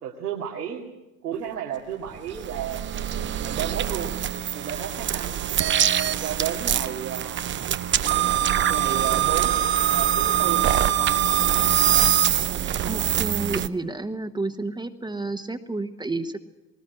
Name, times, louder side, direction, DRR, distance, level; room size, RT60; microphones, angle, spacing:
voice 1, 0.0-0.8 1.2-2.8 3.4-4.1 4.5-5.4 6.2-7.4 8.6-9.5 9.9-11.1, right 9 dB, 80° right, -1 dB, 2.3 m, -32 dB
sound 1, 2.1-13.7, right 11 dB, 25° right, 0.7 m, -23 dB
voice 2, 12.9-16.4, right 2 dB, 10° right, 7 dB, 1.2 m, -30 dB
20.0 x 19.5 x 7.9 m, 1.0 s
hypercardioid pair, 80°, 45 cm